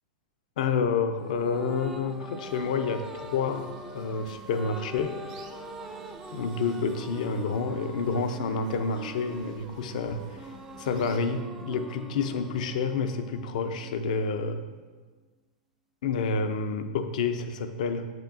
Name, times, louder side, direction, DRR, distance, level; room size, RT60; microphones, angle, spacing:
voice 1, 0.6-5.2 6.3-10.5 10.8-14.7 16.0-18.1, left 5 dB, 65° left, 8 dB, 0.6 m, -29 dB
sound 1, 1.2-14.8, right 1 dB, 10° right, 0.4 m, -43 dB
sound 2, 2.4-11.2, right 4 dB, 55° right, 0.9 m, -51 dB
7.9 x 6.3 x 2.6 m, 1.4 s
hypercardioid pair, 110°, 4 cm